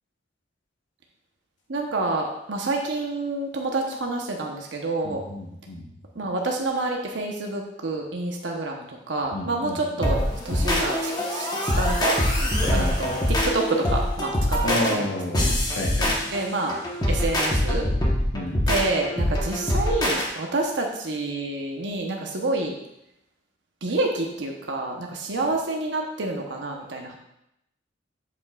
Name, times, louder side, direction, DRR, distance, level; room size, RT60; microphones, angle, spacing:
voice 1, 1.7-5.2 6.1-12.2 12.7-15.1 15.4-15.5 16.3-16.8 17.1-17.9 18.7-22.7 23.8-27.2, right 2 dB, 80° right, 1 dB, 0.9 m, -28 dB
voice 2, 5.0-5.9 9.3-10.1 12.7-13.0 14.6-16.3 18.3-18.6, left 1 dB, 80° left, -1 dB, 1.1 m, -31 dB
sound 1, 10.0-20.3, left 1 dB, 20° left, 1.1 m, -24 dB
8.3 x 7.0 x 2.4 m, 0.82 s
head